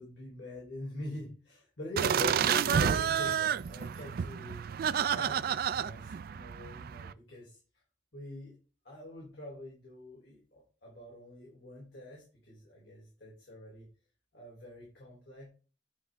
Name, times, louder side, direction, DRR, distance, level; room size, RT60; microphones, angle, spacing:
voice 1, 0.0-4.7 5.1-7.6 8.1-8.5 8.8-13.9 14.3-15.5, left 1 dB, 65° left, -4 dB, 3.2 m, -44 dB
sound 1, 2.0-7.1, right 8 dB, 50° right, 0.3 m, -30 dB
9.7 x 5.8 x 3.3 m, 0.37 s
head